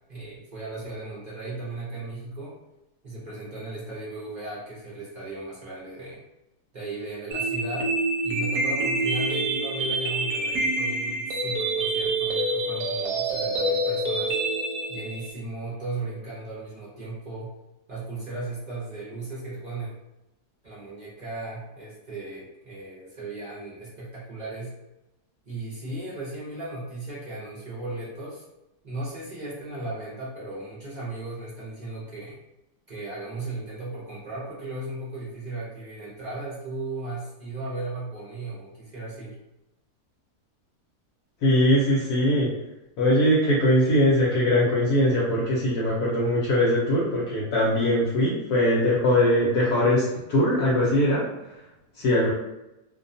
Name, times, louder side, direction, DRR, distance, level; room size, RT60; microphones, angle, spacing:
voice 1, 0.1-2.5 3.0-6.2 6.7-7.9 8.2-14.4 14.9-17.5 17.9-19.9 20.6-24.7 25.5-28.4 28.8-32.4 32.9-39.4, right 2 dB, 45° right, -8 dB, 0.5 m, -36 dB
sound 1, 7.3-15.3, right 2 dB, 70° right, 1.0 m, -27 dB
voice 2, 41.4-42.5 43.0-51.3 52.0-52.3, left 1 dB, 70° left, -6 dB, 1.1 m, -21 dB
2.7 x 2.2 x 2.6 m, 0.92 s
omnidirectional pair, 1.7 m